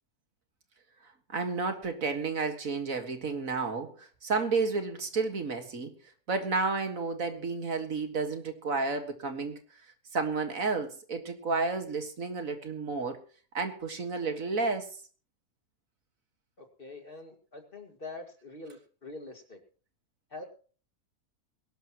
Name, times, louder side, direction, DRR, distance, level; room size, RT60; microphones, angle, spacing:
voice 1, 1.3-5.9 6.3-9.6 10.1-13.2 13.5-14.9, right 4 dB, 60° right, 7 dB, 2.1 m, -31 dB
voice 2, 16.6-19.6 20.3-20.4, left 3 dB, 35° left, 5 dB, 2.2 m, -44 dB
22.0 x 12.0 x 3.0 m, 0.39 s
omnidirectional pair, 1.6 m